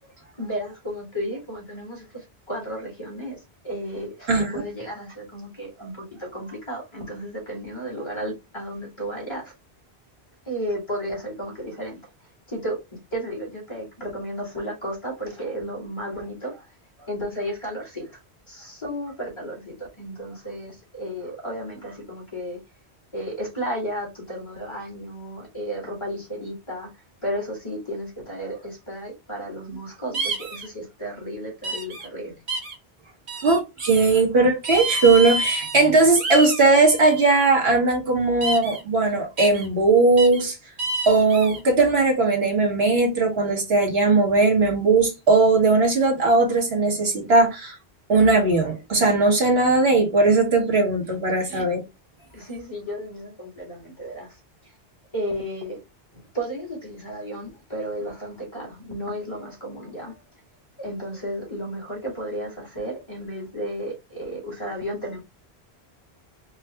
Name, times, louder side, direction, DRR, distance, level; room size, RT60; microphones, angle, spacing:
voice 1, 0.3-9.5 10.5-12.0 12.5-12.8 13.1-18.2 18.5-22.6 23.1-32.4 33.0-33.1 51.4-51.7 52.3-54.8 55.1-55.8 56.1-60.2 60.8-65.2, equal, 25° left, 1.8 m, -33 dB
sound 1, 30.1-30.7 31.6-32.1 32.5-32.8 33.3-34.0 34.6-35.9 36.2-37.5 38.4-38.8 39.4-39.7 40.2-40.4 40.8-41.6, right 2 dB, 90° right, 1.3 m, -29 dB
voice 2, 33.4-40.6 41.1-47.7 48.1-51.8, right 3 dB, 70° right, 1.5 m, -19 dB
4.6 x 2.4 x 3.3 m
omnidirectional pair, 1.1 m